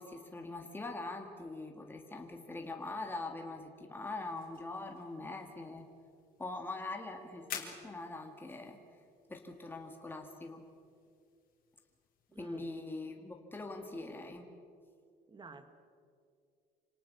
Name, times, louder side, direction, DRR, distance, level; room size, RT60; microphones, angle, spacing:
voice 1, 0.0-5.9 6.4-8.8 9.3-10.6 12.4-14.5, left 2 dB, 10° left, 3 dB, 2.2 m, -43 dB
sound 1, 4.0-12.5, left 8 dB, 55° left, 3.7 m, -52 dB
voice 2, 12.3-12.7 15.3-15.7, right 4 dB, 25° right, 9 dB, 1.8 m, -52 dB
27.0 x 18.5 x 7.0 m, 2.3 s
cardioid pair, 110°, 17 cm